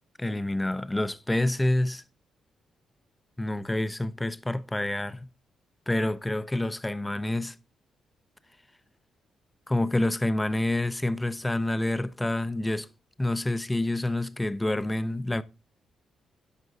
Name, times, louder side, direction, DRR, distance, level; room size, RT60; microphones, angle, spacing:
voice 1, 0.2-2.0 3.4-5.3 5.9-7.5 9.7-12.9 13.2-15.4, left 1 dB, 15° left, 0.6 m, -28 dB
12.5 x 5.2 x 2.7 m
hypercardioid pair, 45°, 0 cm